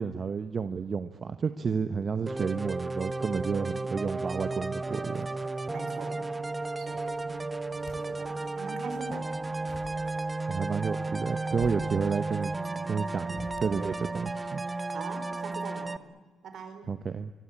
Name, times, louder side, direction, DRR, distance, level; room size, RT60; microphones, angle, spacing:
voice 1, 0.0-5.3 10.5-12.5 12.9-14.6 16.9-17.3, right 5 dB, 40° right, 10 dB, 1.1 m, -31 dB
sound 1, 2.3-16.0, right 3 dB, 20° right, 1.0 m, -33 dB
voice 2, 5.7-6.3 6.8-7.4 7.9-9.3 13.2-13.4 14.9-16.1 16.4-16.9, right 5 dB, 65° right, 8 dB, 5.0 m, -42 dB
sound 2, 6.9-8.4 8.8-14.1, left 4 dB, 50° left, 5.0 m, -49 dB
26.0 x 23.5 x 8.9 m, 1.4 s
cardioid pair, 90°, 0 cm